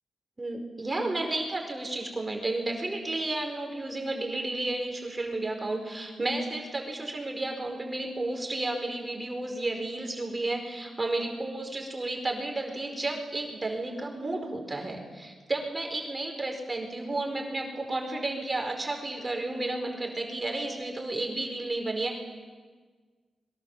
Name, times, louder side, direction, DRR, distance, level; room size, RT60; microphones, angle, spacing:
voice 1, 0.4-22.2, right 2 dB, 30° right, 2 dB, 4.8 m, -32 dB
26.5 x 23.0 x 7.4 m, 1.5 s
cardioid pair, 70°, 0 cm